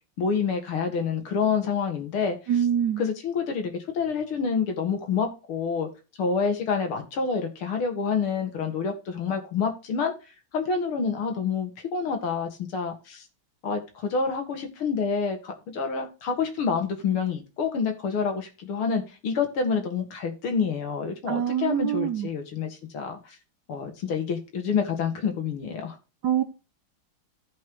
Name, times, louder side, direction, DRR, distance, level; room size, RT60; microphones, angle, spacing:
voice 1, 0.2-2.7 3.0-5.9 6.2-10.1 10.5-13.2 13.6-23.4 23.7-26.0, left 5 dB, 80° left, 2.6 m, -28 dB
voice 2, 2.5-3.0 21.3-22.3 26.2-26.4, right 9 dB, 65° right, 1.1 m, -24 dB
14.5 x 5.4 x 3.0 m
omnidirectional pair, 2.4 m